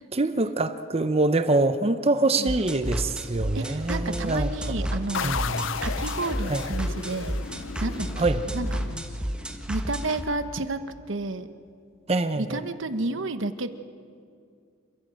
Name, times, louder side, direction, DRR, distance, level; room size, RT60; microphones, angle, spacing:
voice 1, 0.1-4.5 4.8-4.9 5.2-5.8 6.5-6.6 8.2-8.4 12.1-12.6, right 2 dB, 30° right, 11 dB, 0.7 m, -25 dB
sound 1, 2.5-10.2, equal, 5° right, 1.3 m, -31 dB
voice 2, 3.5-5.5 5.8-7.4 7.8-8.9 9.7-10.8 11.1-11.5 12.4-13.7, right 2 dB, 65° right, 10 dB, 1.0 m, -31 dB
sound 2, 5.1-9.7, left 6 dB, 65° left, 0.5 m, -34 dB
27.5 x 14.0 x 7.6 m, 2.3 s
head